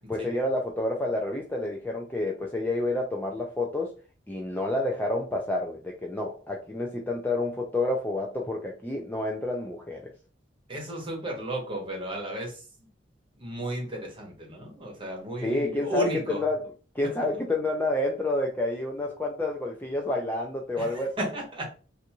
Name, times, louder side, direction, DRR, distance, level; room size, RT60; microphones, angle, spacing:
voice 1, 0.1-3.9 4.3-10.0 15.4-16.6 16.9-21.1, left 2 dB, 10° left, 0 dB, 0.4 m, -29 dB
voice 2, 10.7-12.9 13.4-16.4 17.0-17.1 20.8-21.7, right 1 dB, 25° right, 0 dB, 1.1 m, -34 dB
3.4 x 2.6 x 2.9 m, 0.35 s
head